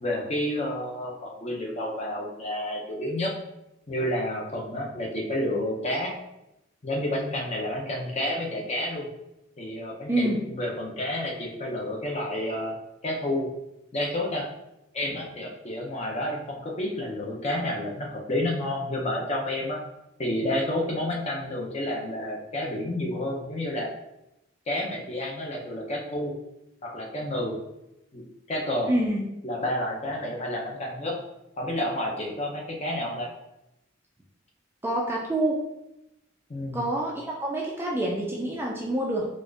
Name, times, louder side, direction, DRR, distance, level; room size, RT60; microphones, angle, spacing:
voice 1, 0.0-3.3 3.9-6.1 6.8-9.1 9.6-12.8 13.0-13.5 13.9-14.5 14.9-19.8 20.2-23.9 24.7-26.3 26.8-27.6 28.1-28.2 28.5-28.9 29.4-31.2 31.6-33.3 36.5-36.8, left 1 dB, 35° left, -2 dB, 0.6 m, -30 dB
voice 2, 10.1-10.5 28.9-29.2 34.8-35.7 36.7-39.3, right 1 dB, 10° right, -3 dB, 0.3 m, -27 dB
4.1 x 2.4 x 2.4 m, 0.90 s
head